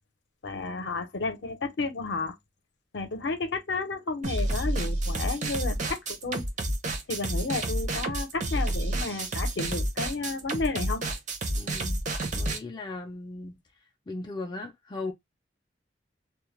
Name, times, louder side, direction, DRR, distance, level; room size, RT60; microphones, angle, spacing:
voice 1, 0.4-2.3 2.9-6.4 7.1-11.0, left 3 dB, 65° left, 0.6 m, -32 dB
sound 1, 4.2-12.6, right 1 dB, 40° right, 0.6 m, -29 dB
voice 2, 11.5-12.0 12.3-13.6 14.1-15.1, left 2 dB, 25° left, 0.3 m, -37 dB
2.2 x 2.0 x 2.9 m
head